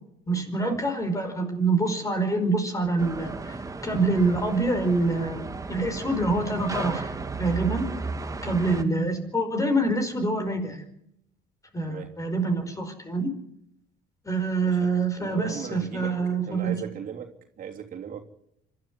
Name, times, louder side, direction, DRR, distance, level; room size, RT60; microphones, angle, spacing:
voice 1, 0.3-3.6 3.8-7.1 7.4-7.9 8.4-10.8 11.7-13.3 14.2-16.7, right 2 dB, 20° left, 5.0 m, -26 dB
sound 1, 3.0-8.8, right 4 dB, 20° right, 1.6 m, -34 dB
voice 2, 14.7-16.2 16.5-18.2, right 8 dB, 55° right, 3.2 m, -38 dB
26.0 x 13.0 x 9.6 m
cardioid pair, 110°, 17 cm